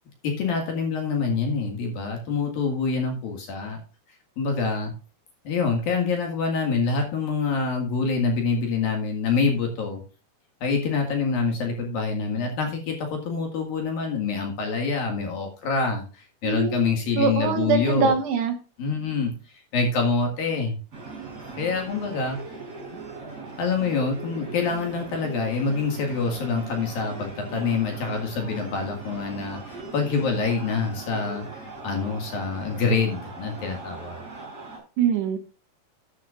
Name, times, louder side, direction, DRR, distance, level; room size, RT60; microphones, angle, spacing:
voice 1, 0.2-3.8 4.4-4.9 5.4-10.0 10.6-18.2 18.8-19.3 19.7-20.8 21.6-22.4 23.6-34.2, left 4 dB, 55° left, 3 dB, 3.1 m, -26 dB
voice 2, 16.4-18.5 35.0-35.4, right 6 dB, 70° right, 5 dB, 3.1 m, -23 dB
sound 1, 20.9-34.8, right 3 dB, 20° right, 6.5 m, -40 dB
12.5 x 10.5 x 2.5 m, 0.34 s
omnidirectional pair, 5.8 m